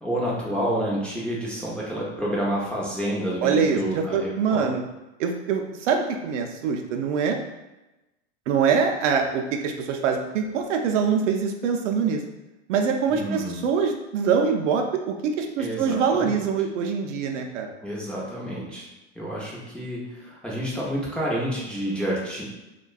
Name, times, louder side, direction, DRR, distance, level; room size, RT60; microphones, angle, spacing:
voice 1, 0.0-4.7 13.1-13.6 15.6-16.5 17.8-18.9 19.2-22.4, right 1 dB, 5° left, -6 dB, 0.4 m, -29 dB
voice 2, 3.4-4.8 5.2-7.4 8.5-12.2 12.7-17.7, right 6 dB, 85° right, 3 dB, 0.5 m, -24 dB
2.5 x 2.2 x 2.3 m, 1.0 s
hypercardioid pair, 105°, 36 cm